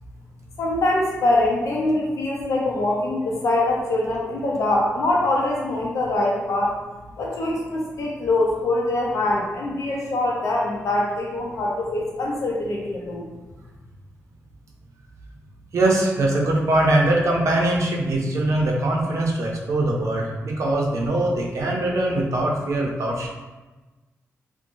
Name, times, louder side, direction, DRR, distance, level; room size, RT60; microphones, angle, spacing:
voice 1, 0.6-6.8 7.2-13.2, left 2 dB, 70° left, -3 dB, 0.5 m, -23 dB
voice 2, 15.7-23.3, right 1 dB, 70° right, -1 dB, 0.5 m, -22 dB
2.6 x 2.1 x 2.9 m, 1.2 s
cardioid pair, 95°, 5 cm